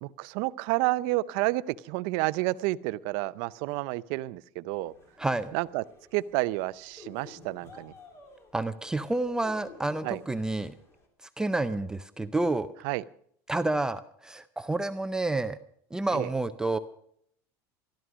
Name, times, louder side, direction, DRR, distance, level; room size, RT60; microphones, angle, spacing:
voice 1, 0.0-4.9 5.5-5.8 6.1-7.9 10.0-10.2 12.8-13.0 16.1-16.3, right 19 dB, 70° right, 17 dB, 0.6 m, -30 dB
sound 1, 4.7-11.1, left 3 dB, 30° left, 2.8 m, -53 dB
voice 2, 5.2-5.5 8.5-10.7 11.4-12.7 13.5-15.6 15.9-16.8, right 2 dB, 10° right, 10 dB, 0.5 m, -29 dB
14.0 x 13.0 x 6.1 m, 0.67 s
cardioid pair, 150°, 9 cm